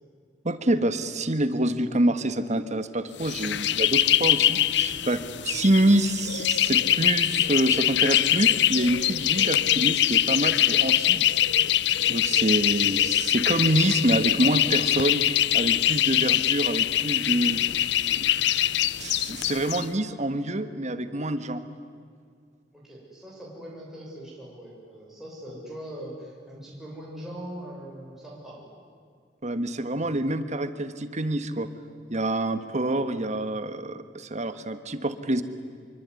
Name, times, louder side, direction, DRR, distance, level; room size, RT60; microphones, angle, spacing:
voice 1, 0.4-11.3 12.1-15.2 15.5-17.6 18.2-18.3 19.0-21.6 29.4-31.7 32.1-35.4, right 1 dB, 40° right, 10 dB, 1.5 m, -26 dB
sound 1, 3.2-19.8, left 12 dB, 70° left, 0.6 m, -23 dB
voice 2, 22.7-28.7, right 1 dB, ahead, -5 dB, 6.8 m, -41 dB
25.5 x 24.0 x 9.7 m, 2.2 s
head